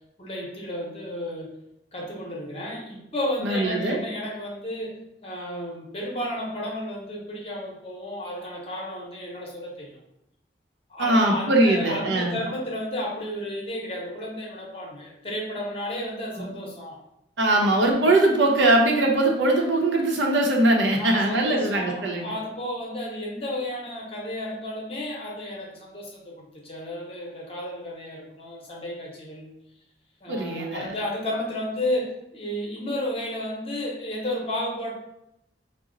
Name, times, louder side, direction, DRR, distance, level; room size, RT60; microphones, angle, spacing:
voice 1, 0.2-1.5 1.9-10.0 10.9-17.0 21.0-29.5 30.2-34.9, left 1 dB, 30° left, -2 dB, 0.8 m, -32 dB
voice 2, 3.4-4.0 11.0-12.4 16.4-16.5 17.4-22.2 30.3-30.9, right 1 dB, 80° right, 1 dB, 0.7 m, -21 dB
4.0 x 2.1 x 3.8 m, 0.84 s
head